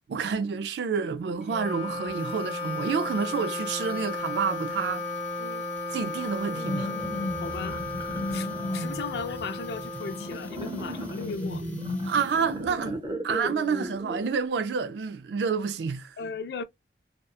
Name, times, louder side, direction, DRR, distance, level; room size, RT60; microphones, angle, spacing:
voice 1, 0.1-5.0 5.9-6.9 8.3-8.4 12.0-16.2, right 5 dB, 75° right, 0.3 m, -29 dB
sound 1, 1.2-1.3 1.6-1.7 1.9-12.8 13.0-13.1, right 2 dB, 10° left, 0.7 m, -47 dB
Wind instrument woodwind instrument, 1.4-11.0, left 3 dB, 40° left, 0.7 m, -35 dB
sound 2, 6.5-14.3, left 1 dB, 25° right, 0.7 m, -34 dB
voice 2, 7.4-7.8 8.3-8.5 8.7-11.6 16.2-16.6, left 4 dB, 65° left, 0.4 m, -36 dB
2.8 x 2.1 x 2.3 m
head